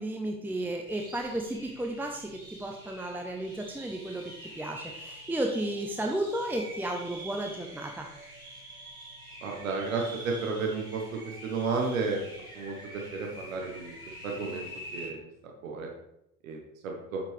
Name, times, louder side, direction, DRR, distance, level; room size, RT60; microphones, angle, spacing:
voice 1, 0.0-2.3 2.6-8.1, right 1 dB, 5° right, 3 dB, 0.8 m, -33 dB
sound 1, 0.8-15.1, equal, 85° right, 2.5 m, -46 dB
voice 2, 9.4-12.3 12.5-13.9 14.2-14.7 14.9-15.2 15.6-15.9 16.4-17.2, right 4 dB, 70° right, 1 dB, 1.4 m, -32 dB
8.5 x 7.4 x 3.4 m, 0.83 s
figure-of-eight pair, 65°, 42 cm